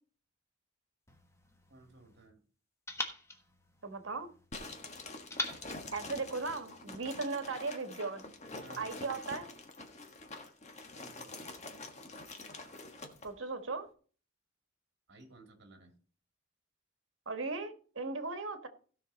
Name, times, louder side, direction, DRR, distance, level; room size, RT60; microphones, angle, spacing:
sound 1, 1.1-2.3 2.9-4.5 5.3-6.9, left 2 dB, 15° left, 1.3 m, -43 dB
voice 1, 1.7-2.4 5.3-5.7 8.6-8.9 10.9-11.5 15.1-15.9, right 2 dB, 60° right, 2.5 m, -56 dB
voice 2, 3.8-4.3 5.9-8.2 8.8-9.5 13.2-13.9 17.3-18.7, right 3 dB, 75° right, 1.5 m, -37 dB
sound 2, 4.5-13.3, left 2 dB, 35° left, 1.5 m, -46 dB
16.5 x 6.0 x 4.1 m
head